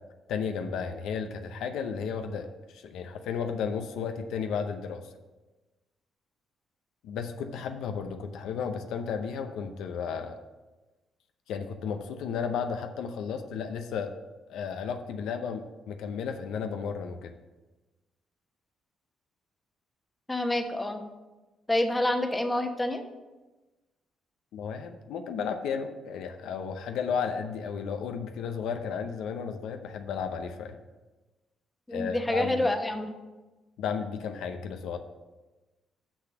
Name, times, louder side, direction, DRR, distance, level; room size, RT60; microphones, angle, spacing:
voice 1, 0.3-5.0 7.0-10.4 11.5-14.1 14.5-17.3 24.5-30.8 31.9-32.7 33.8-35.0, left 6 dB, 85° left, 6 dB, 0.7 m, -33 dB
voice 2, 20.3-21.0 21.7-23.0 31.9-33.1, left 1 dB, 15° left, 5 dB, 1.0 m, -27 dB
6.2 x 6.0 x 6.8 m, 1.2 s
cardioid pair, 90°, 0 cm